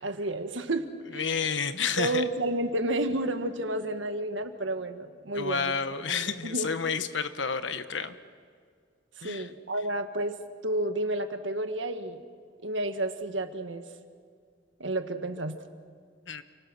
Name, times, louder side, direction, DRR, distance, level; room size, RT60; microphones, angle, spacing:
voice 1, 0.0-1.2 2.0-6.7 9.2-10.4 10.6-12.2 12.6-13.8 14.8-15.6, right 1 dB, 80° right, 8 dB, 1.6 m, -31 dB
voice 2, 1.1-2.2 5.3-8.1 9.2-9.5 16.3-16.4, left 6 dB, 75° left, 11 dB, 1.2 m, -30 dB
29.0 x 24.0 x 6.3 m, 2.1 s
head